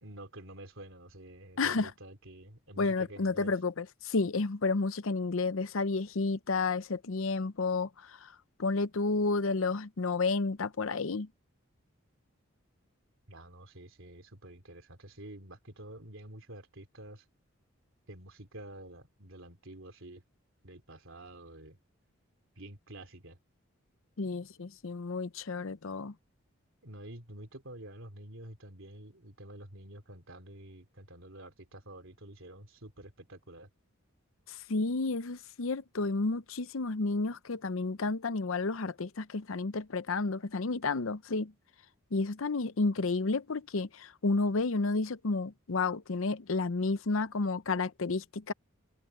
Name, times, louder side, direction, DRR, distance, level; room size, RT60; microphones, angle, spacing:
voice 1, 0.0-3.5 13.3-17.2 18.1-20.2 20.6-21.8 22.6-23.4 26.8-33.7, right 1 dB, 65° right, 3.4 m, -49 dB
voice 2, 1.6-1.9 2.8-8.3 8.6-11.3 24.2-26.1 34.5-41.5 42.1-48.5, left 3 dB, 70° left, 0.7 m, -31 dB
head